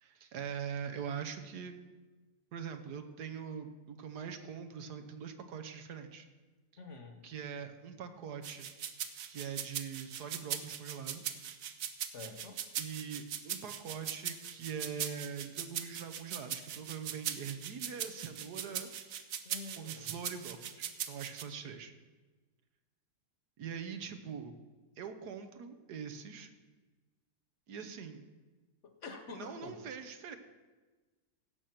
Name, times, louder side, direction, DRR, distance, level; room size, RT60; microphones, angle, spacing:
voice 1, 0.0-1.8 2.5-6.3 7.2-8.7 9.3-11.2 12.8-18.9 19.7-21.9 23.6-24.6 25.0-26.5 27.7-28.2 29.3-30.4, right 7 dB, 85° right, 8 dB, 1.5 m, -43 dB
voice 2, 6.8-7.2 12.1-12.6 19.4-20.1 28.8-29.9, left 3 dB, 50° left, 5 dB, 1.3 m, -47 dB
sound 1, 8.4-21.4, right 9 dB, 65° right, 1.0 m, -40 dB
16.0 x 6.5 x 5.9 m, 1.3 s
omnidirectional pair, 1.7 m